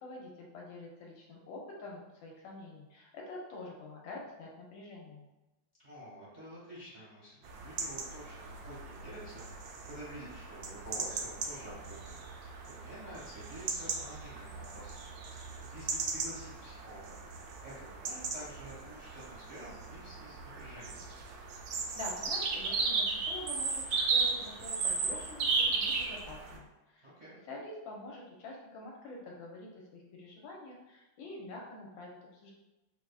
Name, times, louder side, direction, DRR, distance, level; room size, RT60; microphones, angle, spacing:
voice 1, 0.0-5.2 21.9-27.1 27.5-32.5, left 2 dB, 75° left, -2 dB, 1.3 m, -46 dB
voice 2, 5.8-21.0 27.0-27.3, right 1 dB, 30° right, -9 dB, 0.8 m, -49 dB
sound 1, 7.4-26.6, right 4 dB, 75° right, 1.1 m, -36 dB
4.7 x 2.4 x 2.3 m, 1.0 s
omnidirectional pair, 2.3 m